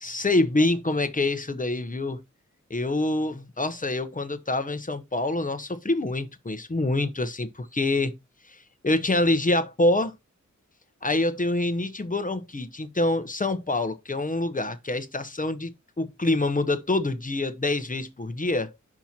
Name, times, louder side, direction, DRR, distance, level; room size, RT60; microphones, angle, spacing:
voice 1, 0.0-2.2 2.7-8.1 8.4-10.1 11.0-18.7, left 2 dB, 25° left, 0.9 m, -26 dB
5.9 x 4.4 x 4.3 m
wide cardioid pair, 70°, 31 cm